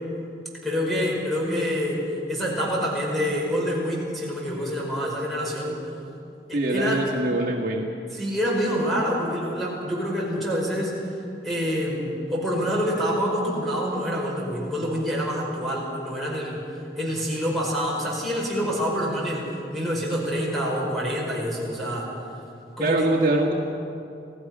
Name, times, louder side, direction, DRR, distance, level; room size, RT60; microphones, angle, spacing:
voice 1, 0.6-5.8 6.5-7.0 8.1-11.0 11.4-22.1 22.8-23.1, equal, ahead, -4 dB, 5.2 m, -27 dB
voice 2, 6.5-7.8 22.8-23.5, right 1 dB, 50° right, -1 dB, 1.8 m, -23 dB
27.0 x 17.0 x 6.1 m, 2.7 s
head